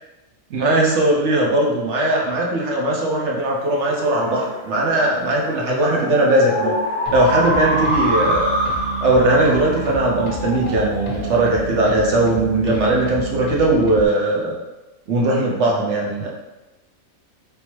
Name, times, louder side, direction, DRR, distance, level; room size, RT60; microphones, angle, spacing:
voice 1, 0.5-6.8 7.1-8.5 9.0-14.5 15.1-16.3, right 1 dB, 60° right, -2 dB, 1.0 m, -19 dB
sound 1, 3.5-12.4, equal, 10° right, 1.4 m, -26 dB
sound 2, 7.1-14.1, right 3 dB, 50° left, 0.6 m, -30 dB
3.4 x 2.8 x 3.0 m, 1.1 s
omnidirectional pair, 1.5 m